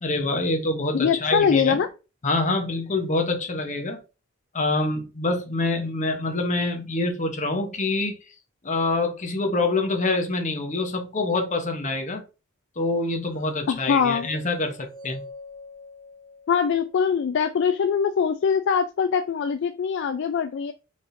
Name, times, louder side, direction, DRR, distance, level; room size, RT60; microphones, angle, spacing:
voice 1, 0.0-1.8 2.2-4.0 4.5-8.2 8.6-12.2 12.8-15.2, left 2 dB, 35° left, 0.9 m, -26 dB
voice 2, 0.9-1.9 13.7-14.3 16.5-20.7, left 6 dB, 55° left, 0.3 m, -22 dB
sound 1, 13.4-17.5, left 2 dB, 45° right, 2.4 m, -45 dB
4.5 x 3.5 x 2.6 m
head